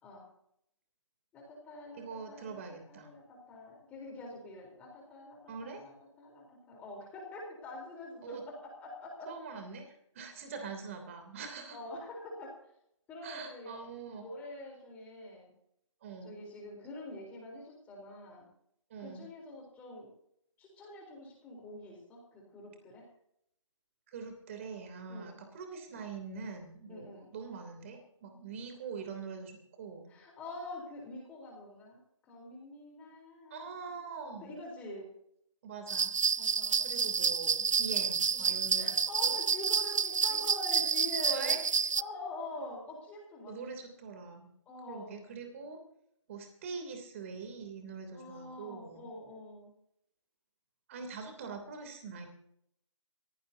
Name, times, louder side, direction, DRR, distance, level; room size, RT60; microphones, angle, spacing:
voice 1, 1.3-5.9 6.2-9.3 11.7-12.5 13.1-13.8 14.1-15.5 16.2-18.5 19.0-20.1 20.6-23.1 25.1-25.4 26.9-27.3 30.1-32.0 32.3-34.1 34.4-35.1 36.4-37.0 38.8-41.6 42.0-43.8 44.7-45.3 48.1-49.7, left 2 dB, 10° left, 0 dB, 3.8 m, -45 dB
voice 2, 1.9-3.1 5.5-5.8 8.2-8.4 9.3-11.8 13.2-14.2 16.0-16.3 18.9-19.3 24.1-30.1 33.5-34.5 35.6-36.1 36.8-39.4 41.2-41.6 43.5-44.5 44.9-45.8 46.3-49.1 50.9-52.3, right 5 dB, 25° right, 5 dB, 3.1 m, -43 dB
sound 1, 35.9-42.0, right 6 dB, 75° right, 0.5 m, -29 dB
23.0 x 16.0 x 2.8 m, 0.73 s
figure-of-eight pair, 165°, 16 cm